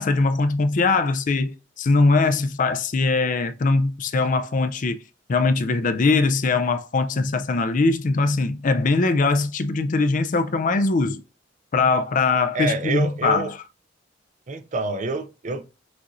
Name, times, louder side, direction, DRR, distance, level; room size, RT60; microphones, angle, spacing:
voice 1, 0.0-5.0 5.3-11.2 11.7-13.5, left 3 dB, 45° left, 0.4 m, -21 dB
voice 2, 12.5-13.5 14.5-15.7, right 2 dB, 40° right, 0.4 m, -27 dB
6.0 x 2.6 x 3.0 m
head